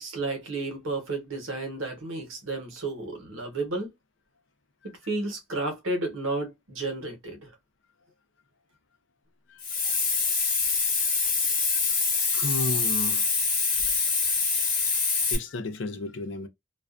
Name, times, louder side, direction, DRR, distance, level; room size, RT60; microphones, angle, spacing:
voice 1, 0.0-3.9 5.1-7.5, right 2 dB, 75° right, 0.9 m, -32 dB
Hiss, 9.6-15.4, left 4 dB, 40° left, 0.9 m, -25 dB
voice 2, 11.7-13.3 13.9-14.0 14.9-16.5, left 3 dB, 60° left, 0.4 m, -35 dB
2.3 x 2.2 x 2.4 m
head